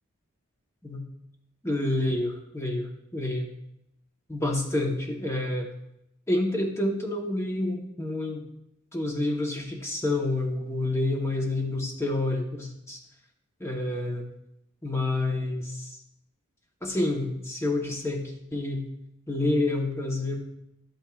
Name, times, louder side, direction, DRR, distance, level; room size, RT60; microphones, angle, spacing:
voice 1, 1.6-3.5 4.3-5.7 6.3-8.4 8.9-13.0 13.6-14.2 14.8-16.0 16.8-18.8 19.3-20.4, left 2 dB, 10° left, 1 dB, 0.9 m, -28 dB
11.5 x 8.7 x 2.4 m, 0.83 s
head